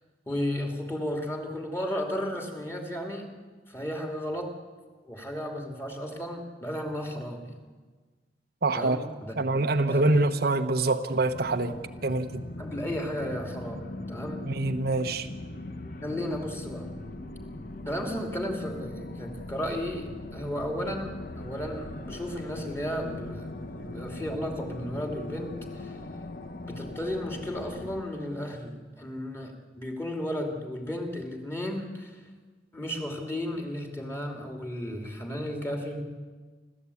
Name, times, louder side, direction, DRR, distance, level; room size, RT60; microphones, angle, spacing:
voice 1, 0.3-3.4 3.7-4.5 5.0-7.6 8.7-10.3 12.6-14.5 16.0-16.9 17.9-23.5 23.7-26.0 26.7-32.2 32.7-36.0, equal, 15° left, 2.7 m, -34 dB
voice 2, 8.6-9.0 9.4-11.7 12.0-12.4 14.4-15.3, right 2 dB, 55° right, 1.0 m, -25 dB
sound 1, 11.3-28.0, left 2 dB, 50° left, 1.3 m, -40 dB
29.5 x 13.5 x 8.5 m
head